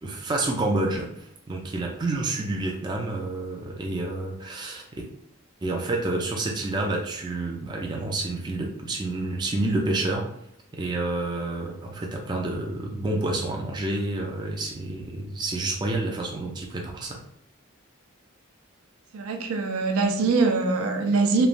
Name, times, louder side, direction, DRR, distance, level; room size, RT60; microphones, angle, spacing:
voice 1, 0.0-4.8 5.6-10.3 10.7-17.2, right 2 dB, 20° right, 0 dB, 0.3 m, -29 dB
voice 2, 19.1-21.5, right 3 dB, 90° right, 5 dB, 0.4 m, -23 dB
3.1 x 2.1 x 2.4 m, 0.75 s
head